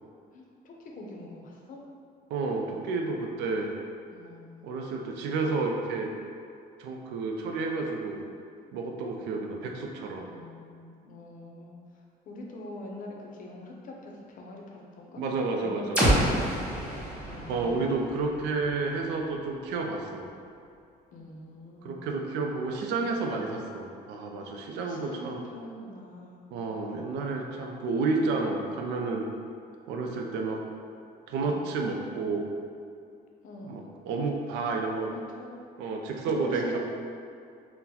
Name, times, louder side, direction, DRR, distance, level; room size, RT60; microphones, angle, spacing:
voice 1, 0.3-1.8 4.1-4.7 10.3-15.2 15.6-16.4 17.3-17.8 21.1-22.0 24.7-26.4 31.4-31.7 33.4-33.8 34.1-34.2 35.1-35.9 36.3-36.8, left 2 dB, 50° left, -1 dB, 0.5 m, -44 dB
voice 2, 2.3-3.7 4.6-6.1 6.8-8.2 8.7-10.3 15.2-16.1 17.5-20.3 21.8-25.4 26.5-29.2 29.9-30.6 31.3-32.5 33.7-35.1 35.8-36.8, right 3 dB, 90° right, 2 dB, 0.4 m, -30 dB
sound 1, 15.9-19.8, right 1 dB, 5° right, 1.2 m, -29 dB
3.7 x 2.1 x 2.8 m, 2.4 s
cardioid pair, 110°, 17 cm